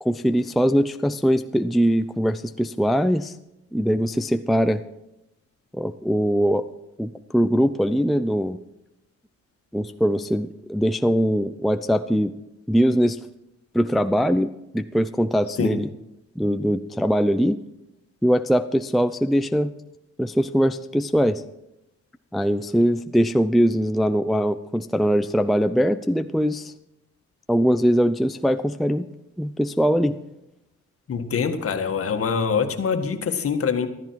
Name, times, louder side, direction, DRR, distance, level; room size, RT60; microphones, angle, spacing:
voice 1, 0.0-3.3 3.7-4.8 5.7-6.7 7.0-8.6 9.7-12.3 12.7-13.2 13.7-15.9 16.4-17.6 18.2-19.7 20.2-21.4 22.3-26.7 27.5-29.1 29.4-30.2, equal, ahead, 9 dB, 0.4 m, -21 dB
voice 2, 31.1-33.9, left 6 dB, 50° left, 7 dB, 1.7 m, -24 dB
14.0 x 13.0 x 4.6 m, 0.89 s
cardioid pair, 90°, 30 cm